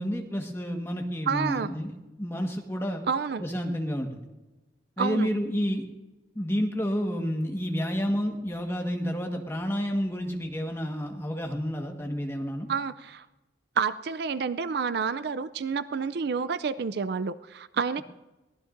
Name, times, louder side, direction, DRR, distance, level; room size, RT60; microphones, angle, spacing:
voice 1, 0.0-1.9 2.2-3.0 3.4-4.3 5.0-5.8 6.3-12.7, equal, 15° left, 2 dB, 1.5 m, -30 dB
voice 2, 1.3-1.7 3.1-3.4 5.0-5.3 12.7-13.3 13.8-18.0, right 5 dB, 60° right, 13 dB, 0.4 m, -29 dB
22.5 x 17.5 x 2.6 m, 1.1 s
head